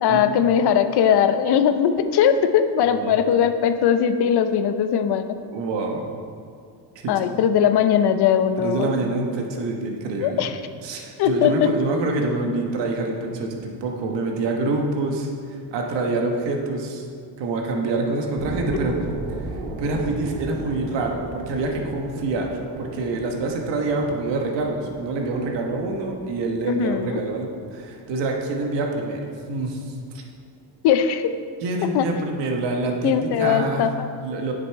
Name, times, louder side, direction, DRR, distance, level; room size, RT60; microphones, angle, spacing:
voice 1, 0.0-5.4 7.1-8.9 10.2-10.6 11.2-11.5 26.7-27.2 30.8-31.3 31.9-32.0 33.0-34.1, left 8 dB, 65° left, 9 dB, 0.7 m, -20 dB
voice 2, 5.5-6.1 7.0-7.3 8.6-10.5 10.8-17.1 17.4-18.9 19.3-22.5 22.8-29.2 29.5-30.2 31.6-33.8 34.2-34.5, right 3 dB, 80° right, 1 dB, 1.4 m, -26 dB
sound 1, 18.4-29.4 29.8-29.9, right 2 dB, 50° right, 1.3 m, -36 dB
9.9 x 6.9 x 4.6 m, 2.3 s
cardioid pair, 145°, 42 cm